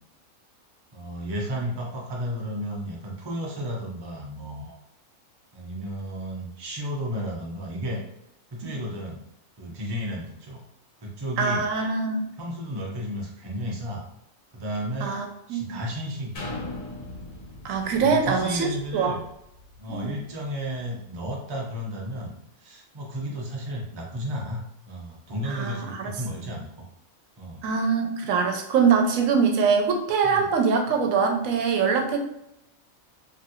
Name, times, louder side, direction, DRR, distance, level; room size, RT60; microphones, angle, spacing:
voice 1, 0.9-4.8 5.5-8.0 8.5-9.2 9.6-10.6 11.0-11.6 12.4-14.0 14.5-15.2 15.5-16.5 18.0-19.2 19.8-26.9 27.4-27.6 30.2-30.5, equal, 35° right, -2 dB, 0.4 m, -33 dB
voice 2, 11.4-12.3 15.0-15.8 17.6-19.2 19.9-20.1 25.5-26.1 27.6-32.2, right 5 dB, 80° right, 3 dB, 1.0 m, -23 dB
sound 1, 16.4-20.1 20.7-20.8, left 2 dB, 90° left, 1.4 m, -39 dB
3.0 x 2.6 x 2.7 m, 0.80 s
omnidirectional pair, 1.4 m